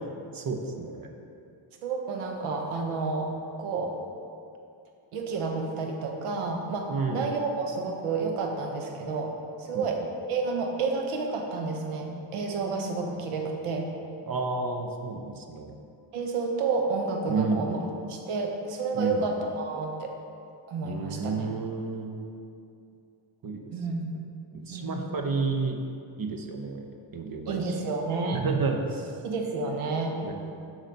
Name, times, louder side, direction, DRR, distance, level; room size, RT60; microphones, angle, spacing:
voice 1, 0.3-1.1 6.9-7.3 9.7-9.9 14.2-15.7 17.3-17.7 18.9-19.2 20.8-22.2 23.4-24.0 24.5-25.8 26.2-26.9 27.1-27.9 28.3-29.2 30.2-30.3, right 4 dB, 45° right, 4 dB, 0.9 m, -31 dB
voice 2, 1.8-3.3 3.6-4.0 5.1-9.3 9.6-10.0 10.3-13.9 16.1-17.8 18.1-20.1 20.7-21.4 23.7-24.2 24.7-25.0 27.5-28.4 29.2-30.2, right 4 dB, 85° right, 2 dB, 0.9 m, -30 dB
7.4 x 3.3 x 5.3 m, 2.5 s
supercardioid pair, 55°, 50 cm